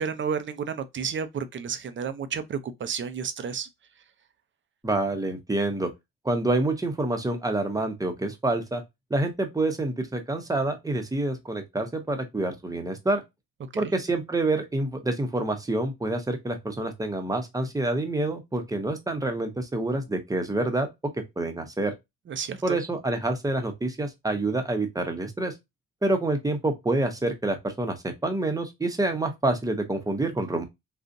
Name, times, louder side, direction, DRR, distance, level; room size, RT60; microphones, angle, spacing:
voice 1, 0.0-3.7 13.7-13.8 22.3-22.8, right 6 dB, 40° right, 0.6 m, -31 dB
voice 2, 4.8-5.9 6.2-8.8 9.1-13.2 13.8-20.9 21.1-21.9 22.6-25.5 26.0-28.0 28.2-30.6, right 2 dB, 10° right, 0.9 m, -27 dB
3.8 x 2.4 x 2.6 m
cardioid pair, 90°, 30 cm